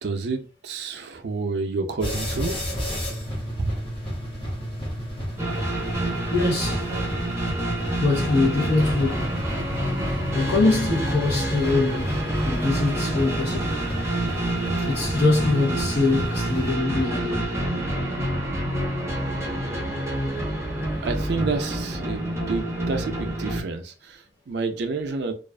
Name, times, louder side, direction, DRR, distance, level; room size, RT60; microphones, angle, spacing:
voice 1, 0.0-2.6 3.3-3.8 6.9-7.0 21.0-25.3, right 3 dB, 70° right, 0.4 m, -29 dB
sound 1, 2.0-17.4, equal, 30° left, 1.0 m, -32 dB
sound 2, 5.4-23.6, right 1 dB, 15° right, 0.7 m, -28 dB
voice 2, 6.3-6.9 8.0-9.2 10.3-13.8 14.9-17.5, left 3 dB, 65° left, 0.9 m, -23 dB
2.4 x 2.4 x 2.2 m
head